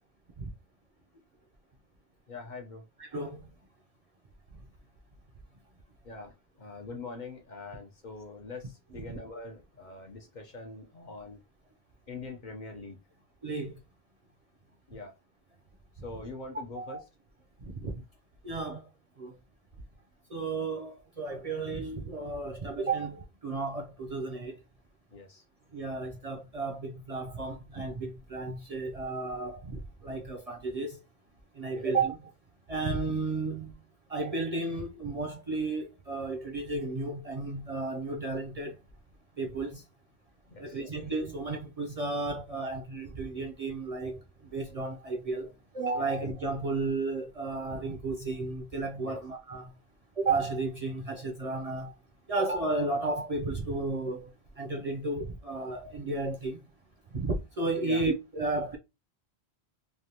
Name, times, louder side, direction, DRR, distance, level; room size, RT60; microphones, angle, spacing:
voice 1, 2.3-2.8 6.0-11.4 12.1-13.0 14.9-15.1 16.0-17.0 25.1-25.4 31.7-31.9 40.5-40.8 49.0-49.2 57.8-58.0, left 3 dB, 50° left, 0.7 m, -43 dB
voice 2, 3.0-3.4 9.1-9.2 13.4-13.8 16.7-17.0 17.6-17.9 18.4-18.9 19.2-19.3 20.3-24.6 25.7-31.0 31.5-32.3 32.7-33.7 34.1-38.8 39.4-39.8 40.6-49.7 50.2-51.9 52.3-54.3 54.6-56.6 57.1-58.8, right 3 dB, 45° right, 0.5 m, -33 dB
3.3 x 2.1 x 2.8 m
omnidirectional pair, 1.1 m